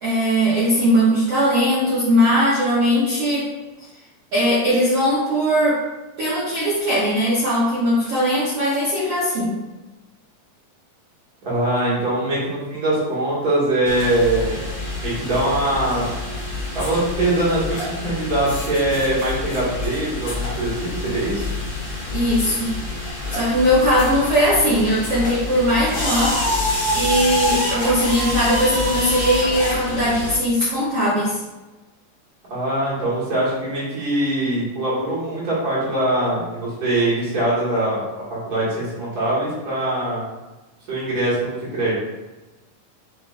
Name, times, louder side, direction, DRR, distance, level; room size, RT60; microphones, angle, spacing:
voice 1, 0.0-3.5 4.3-5.9 6.2-9.6 22.1-22.8 23.3-26.5 26.9-31.4, equal, 75° right, -8 dB, 1.4 m, -19 dB
voice 2, 11.4-14.6 15.0-16.1 16.7-21.4 32.5-38.0 38.3-40.2 40.9-42.0, right 1 dB, 45° right, -8 dB, 1.3 m, -22 dB
sound 1, 13.8-30.3, left 2 dB, 65° left, 1.3 m, -27 dB
6.3 x 2.5 x 2.4 m, 1.1 s
omnidirectional pair, 3.9 m